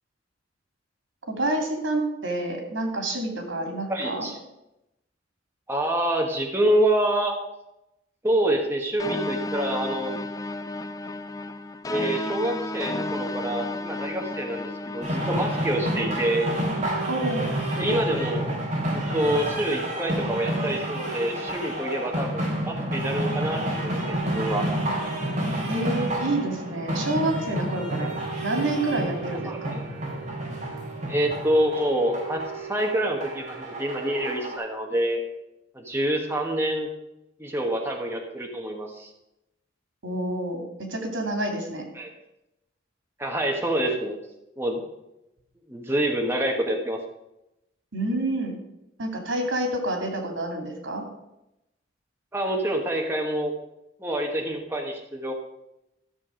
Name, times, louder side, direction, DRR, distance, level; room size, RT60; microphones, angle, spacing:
voice 1, 1.3-4.3 17.1-17.6 25.7-28.1 28.4-29.8 40.0-41.9 47.9-48.5 49.0-51.0, right 1 dB, 90° right, 3 dB, 2.6 m, -28 dB
voice 2, 3.9-4.3 5.7-7.3 8.2-10.2 11.9-16.5 17.8-18.5 18.9-24.7 28.0-28.1 29.4-29.8 31.1-35.2 35.7-36.9 37.4-39.1 41.9-42.1 43.2-44.2 44.6-44.8 45.7-47.0 52.3-53.5 54.0-55.3, right 1 dB, 15° right, 1 dB, 1.3 m, -26 dB
sound 1, 9.0-16.6, left 2 dB, 20° left, 0.4 m, -33 dB
sound 2, 15.0-34.6, right 1 dB, 35° right, 3.2 m, -29 dB
13.5 x 6.9 x 5.1 m, 0.89 s
head